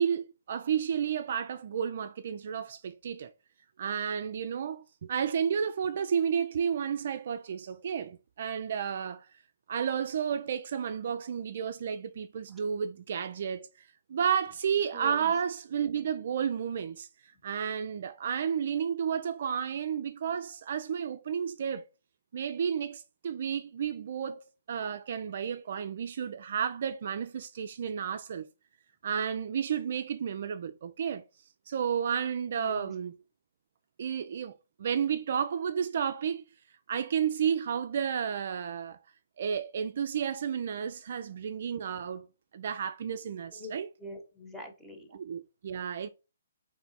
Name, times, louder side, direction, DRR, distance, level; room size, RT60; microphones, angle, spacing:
voice 1, 0.0-3.3 3.8-9.3 9.7-21.8 22.3-24.4 24.7-28.5 29.0-31.2 31.7-33.1 34.0-36.4 36.9-39.0 39.4-42.3 42.5-43.9 45.1-46.1, right 7 dB, 55° right, 0.4 m, -32 dB
voice 2, 14.9-15.3 32.6-32.9 43.5-43.7 44.0-45.2, left 1 dB, 5° left, 1.1 m, -43 dB
3.4 x 3.1 x 3.9 m
hypercardioid pair, 145°, 0 cm